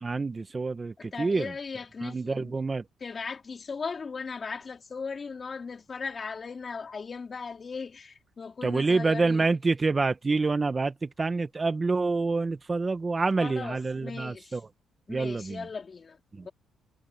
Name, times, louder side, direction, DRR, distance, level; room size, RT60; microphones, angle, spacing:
voice 1, 0.0-1.5 2.0-2.8 8.6-14.6 15.1-15.6 16.3-16.5, right 3 dB, 30° right, 1.4 m, -27 dB
voice 2, 1.0-2.5 3.0-9.5 13.4-14.6 15.1-16.5, left 5 dB, 40° left, 4.2 m, -38 dB
cardioid pair, 90°, 0 cm